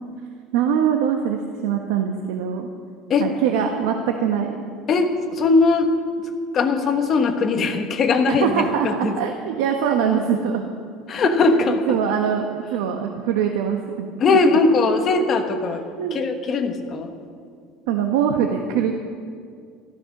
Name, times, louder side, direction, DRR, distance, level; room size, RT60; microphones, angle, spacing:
voice 1, 0.5-2.7 3.2-4.6 8.3-10.6 11.5-14.4 16.0-16.2 17.9-18.9, right 8 dB, 85° right, 3 dB, 1.2 m, -23 dB
voice 2, 4.9-5.9 6.5-9.1 11.1-11.8 14.2-15.8 16.1-17.1, left 4 dB, 25° left, 5 dB, 1.2 m, -20 dB
13.5 x 13.5 x 6.1 m, 2.2 s
cardioid pair, 180°, 0 cm